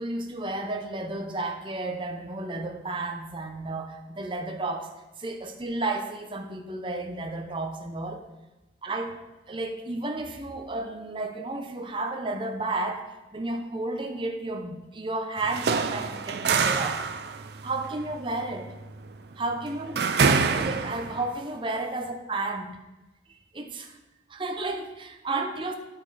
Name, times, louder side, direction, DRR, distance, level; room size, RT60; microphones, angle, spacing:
voice 1, 0.0-4.9 5.2-8.2 8.8-9.2 9.5-13.0 13.3-17.0 17.6-18.8 19.4-22.8 23.5-24.0 24.3-25.8, right 2 dB, 25° right, 4 dB, 0.7 m, -32 dB
sound 1, 15.4-21.3, right 5 dB, 65° right, 0.5 m, -26 dB
10.5 x 5.1 x 4.1 m, 1.1 s
head